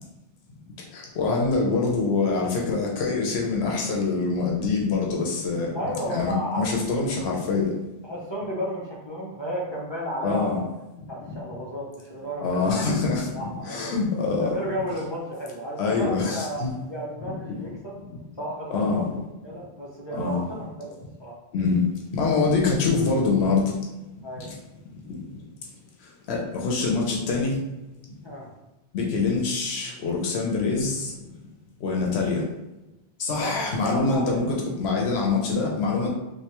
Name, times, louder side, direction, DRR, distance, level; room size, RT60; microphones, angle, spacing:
voice 1, 0.9-5.7 6.1-7.7 10.2-10.6 12.4-13.3 13.6-14.5 15.8-16.7 18.7-19.1 20.1-20.4 21.5-21.8 22.1-23.7 24.4-24.5 26.3-27.6 28.9-31.1 31.8-32.4 33.2-36.1, left 4 dB, 90° left, -1 dB, 0.9 m, -24 dB
voice 2, 5.7-6.8 8.0-10.6 11.1-13.0 13.3-14.0 14.4-18.0 18.4-21.3 24.2-24.5 28.2-28.5 33.3-34.4, equal, 30° left, -5 dB, 0.6 m, -33 dB
3.3 x 2.6 x 2.9 m, 1.0 s
omnidirectional pair, 1.0 m